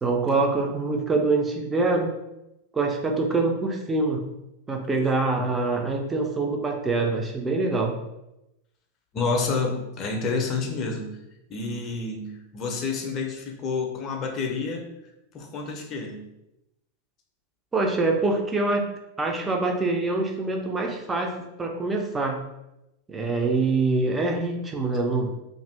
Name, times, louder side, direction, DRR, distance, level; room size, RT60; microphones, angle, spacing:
voice 1, 0.0-2.1 2.7-4.2 4.7-7.9 17.7-18.9 19.2-22.4 23.1-25.4, right 3 dB, 15° right, 2 dB, 0.5 m, -25 dB
voice 2, 9.1-11.2 11.5-14.9 15.3-16.2, left 4 dB, 30° left, 2 dB, 0.6 m, -29 dB
2.5 x 2.4 x 3.3 m, 0.91 s
figure-of-eight pair, 90°, 0 cm